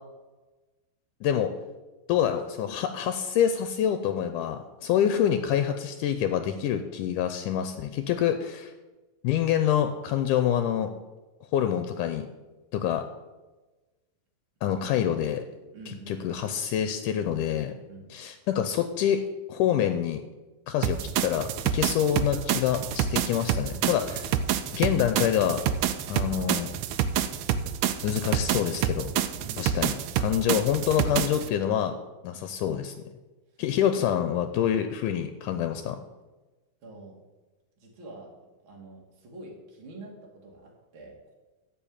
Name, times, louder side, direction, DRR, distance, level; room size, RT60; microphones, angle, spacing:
voice 1, 1.2-1.5 2.1-8.7 9.2-10.9 11.5-12.3 12.7-13.0 14.6-15.4 16.1-17.7 18.1-19.2 19.5-20.2 20.7-24.3 24.7-25.6 26.1-26.7 28.0-29.1 29.6-32.0 32.2-32.9 33.6-36.0, left 9 dB, 80° left, 8 dB, 2.1 m, -26 dB
voice 2, 15.7-16.3 17.9-18.1 23.2-23.4 29.4-30.0 33.5-33.6 36.8-37.2 37.8-38.3 38.6-41.3, right 2 dB, 40° right, -2 dB, 3.0 m, -46 dB
sound 1, 20.8-31.5, right 9 dB, 90° right, 1.6 m, -28 dB
13.0 x 4.8 x 8.7 m, 1.2 s
omnidirectional pair, 3.9 m